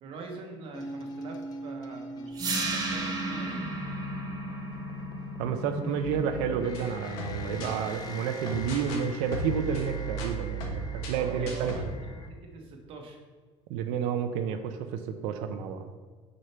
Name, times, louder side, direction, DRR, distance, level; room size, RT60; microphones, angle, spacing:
voice 1, 0.0-3.7 11.1-12.1 12.5-13.2, right 3 dB, 45° right, 2 dB, 1.0 m, -44 dB
sound 1, 0.7-12.3, left 2 dB, 30° left, 0.6 m, -42 dB
sound 2, 2.3-8.4, right 3 dB, 30° right, 1.4 m, -35 dB
voice 2, 5.4-11.9 13.7-15.9, right 7 dB, 80° right, 8 dB, 0.7 m, -30 dB
sound 3, 6.0-7.8 8.5-9.0 9.3-11.9, right 2 dB, 85° left, 1.3 m, -36 dB
6.6 x 5.4 x 4.4 m, 1.4 s
cardioid pair, 160°, 12 cm